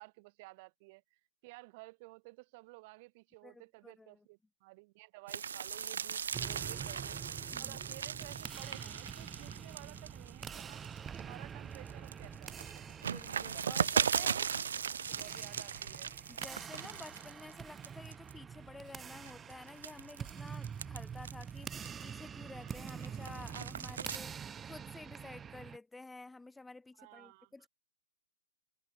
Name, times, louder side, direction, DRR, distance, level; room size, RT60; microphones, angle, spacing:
voice 1, 0.0-7.2 7.6-10.8 11.2-12.9 13.3-14.5 15.0-16.2 23.1-23.2 27.0-27.5, right 25 dB, 35° right, 1.0 m, -54 dB
voice 2, 3.4-4.3 7.5-7.8 13.0-14.4 15.4-15.5 16.3-24.4 24.6-27.7, left 3 dB, 5° left, 2.3 m, -51 dB
sound 1, 5.3-11.2 11.6-17.5 17.8-18.3 18.9-22.2 22.6-24.2, right 7 dB, 80° right, 0.7 m, -38 dB
sound 2, 6.3-25.8, right 7 dB, 10° right, 0.4 m, -46 dB
hypercardioid pair, 160°, 0 cm